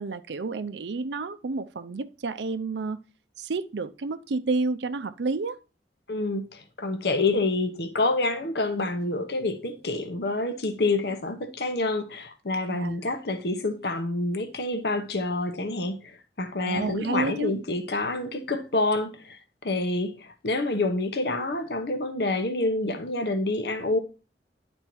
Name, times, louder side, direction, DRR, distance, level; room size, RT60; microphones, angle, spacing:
voice 1, 0.0-3.0 3.4-5.6 12.7-13.0 16.6-17.6, right 3 dB, 80° right, 0.5 m, -30 dB
voice 2, 6.1-16.0 16.4-19.4 19.6-24.0, left 2 dB, 65° left, 1.0 m, -27 dB
10.5 x 4.4 x 4.5 m
head